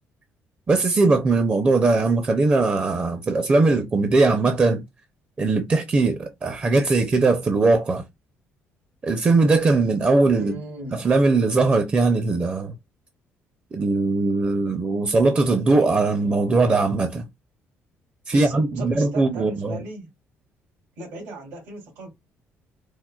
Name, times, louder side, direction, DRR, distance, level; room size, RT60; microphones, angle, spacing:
voice 1, 0.7-4.8 5.4-8.0 9.0-10.5 10.9-12.7 13.7-17.3 18.3-19.8, right 3 dB, 25° right, 0.5 m, -20 dB
voice 2, 10.4-11.1 18.3-20.1 21.0-22.1, right 1 dB, 85° right, 2.3 m, -37 dB
4.4 x 2.1 x 2.3 m
cardioid pair, 130°, 5 cm